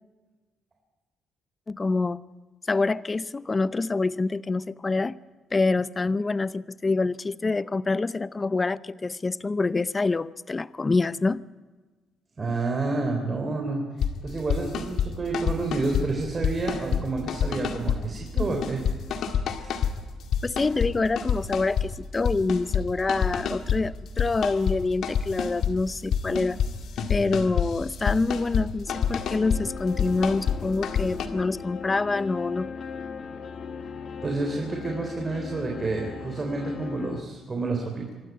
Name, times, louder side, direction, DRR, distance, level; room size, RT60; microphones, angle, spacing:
voice 1, 1.7-2.2 2.7-5.2 5.5-11.4 20.4-26.6 27.1-32.7, left 3 dB, 25° left, 18 dB, 0.5 m, -26 dB
voice 2, 12.4-13.8 14.2-18.8 19.6-19.7 34.2-38.1, right 3 dB, 30° right, 2 dB, 3.8 m, -29 dB
sound 1, 14.0-14.1 14.5-15.1 15.3-16.1 16.4-17.0 17.3-18.0 18.4-19.9 20.3-20.9 21.2-21.9 22.1-22.8 23.1-23.8 24.2-24.8 25.0-25.7 26.1-26.7 27.0-28.6 28.9-29.6 30.0-30.6 30.8-31.3, left 8 dB, 75° left, 1.9 m, -26 dB
sound 2, 28.9-37.2, left 6 dB, 55° left, 1.5 m, -38 dB
25.0 x 12.5 x 9.3 m, 1.3 s
cardioid pair, 90°, 0 cm